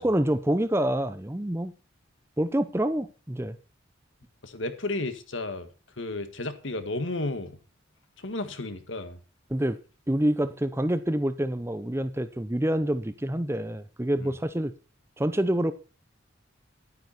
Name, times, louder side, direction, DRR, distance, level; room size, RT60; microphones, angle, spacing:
voice 1, 0.0-1.7 2.4-3.6 9.5-9.8 10.1-14.7 15.2-15.7, right 1 dB, 10° right, 12 dB, 0.6 m, -27 dB
voice 2, 4.4-5.7 6.0-7.5 8.2-9.2 14.2-14.3, left 2 dB, 65° left, 9 dB, 1.7 m, -33 dB
12.0 x 9.5 x 4.4 m, 0.34 s
head